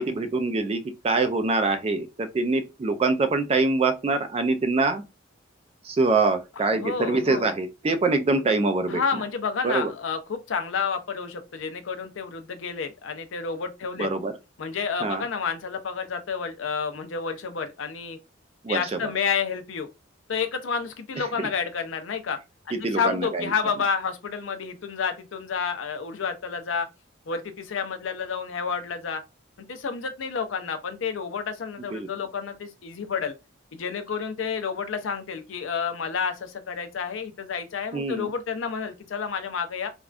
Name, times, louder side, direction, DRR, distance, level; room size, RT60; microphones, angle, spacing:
voice 1, 0.0-5.0 5.8-9.0 9.6-9.9 14.0-14.3 15.0-15.2 18.6-19.0 21.2-21.5 22.7-23.5 31.9-32.1 37.9-38.3, right 3 dB, 30° right, 0.3 m, -24 dB
voice 2, 6.7-7.5 8.9-14.1 14.6-18.2 18.7-19.9 20.3-22.4 22.7-26.9 27.3-29.2 29.6-33.3 33.7-39.9, left 6 dB, 80° left, 0.5 m, -30 dB
3.4 x 2.2 x 2.4 m
head